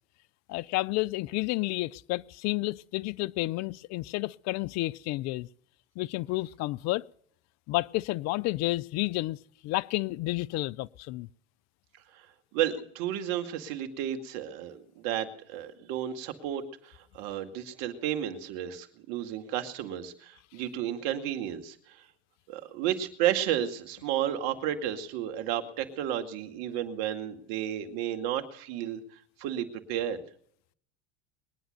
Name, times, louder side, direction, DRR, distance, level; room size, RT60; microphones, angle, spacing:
voice 1, 0.5-5.5 6.0-7.0 7.7-9.4 9.6-11.3, left 20 dB, 50° left, 0.6 m, -30 dB
voice 2, 12.5-22.1 22.5-29.0 29.4-30.2, right 11 dB, 60° right, 2.2 m, -32 dB
21.5 x 10.0 x 6.6 m
supercardioid pair, 100°, 35 cm